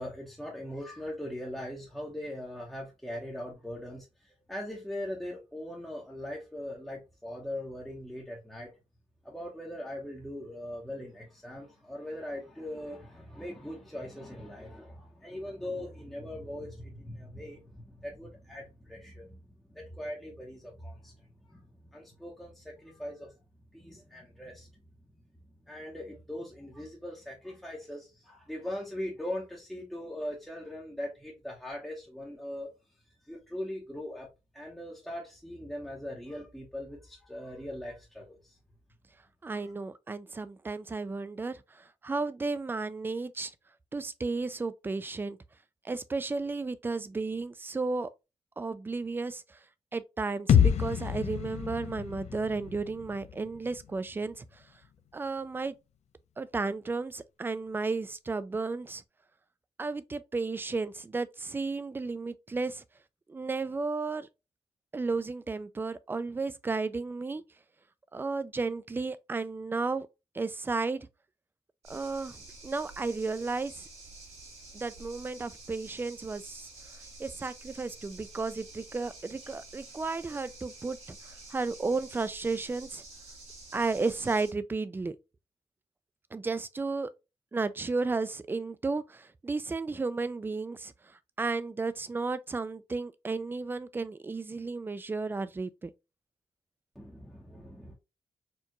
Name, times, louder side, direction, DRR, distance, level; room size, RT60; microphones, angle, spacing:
voice 1, 0.0-8.7 9.2-23.3 23.7-24.8 25.7-32.7 33.3-34.3 34.5-38.6 39.5-39.7 96.9-97.9, left 1 dB, ahead, 0.9 m, -40 dB
voice 2, 39.4-43.5 43.9-45.4 45.8-48.1 48.6-49.6 49.9-54.4 55.1-55.8 56.4-59.0 59.8-62.8 63.3-64.3 64.9-67.4 68.1-70.1 70.3-71.1 71.9-72.4 72.6-73.9 74.7-76.7 77.2-83.0 83.7-85.2 86.3-87.1 87.5-95.9, right 3 dB, 20° right, 0.3 m, -33 dB
sound 1, 50.5-54.4, left 8 dB, 75° left, 0.5 m, -28 dB
sound 2, 71.8-84.5, right 2 dB, 70° right, 1.9 m, -49 dB
4.5 x 2.4 x 2.9 m
wide cardioid pair, 130°, 11 cm